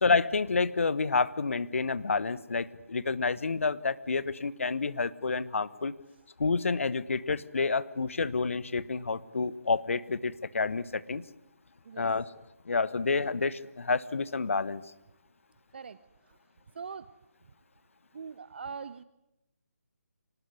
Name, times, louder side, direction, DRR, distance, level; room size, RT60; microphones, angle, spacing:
voice 1, 0.0-5.9 6.4-11.2 12.0-12.2 12.6-14.8, left 4 dB, 55° left, 17 dB, 1.2 m, -29 dB
voice 2, 16.7-17.1 18.1-19.0, right 5 dB, 40° right, 15 dB, 0.9 m, -41 dB
25.5 x 19.5 x 9.7 m, 0.91 s
figure-of-eight pair, 150°, 8 cm